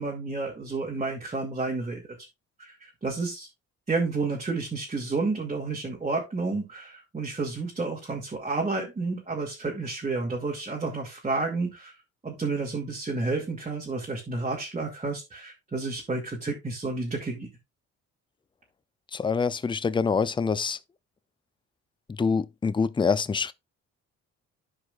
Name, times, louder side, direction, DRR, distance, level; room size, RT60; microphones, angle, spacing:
voice 1, 0.0-2.0 2.6-3.5 3.9-11.9 12.2-17.5, right 3 dB, 25° right, 2.4 m, -30 dB
voice 2, 19.1-20.8 22.1-23.5, left 5 dB, 15° left, 0.5 m, -25 dB
13.5 x 4.8 x 2.4 m
cardioid pair, 90°, 30 cm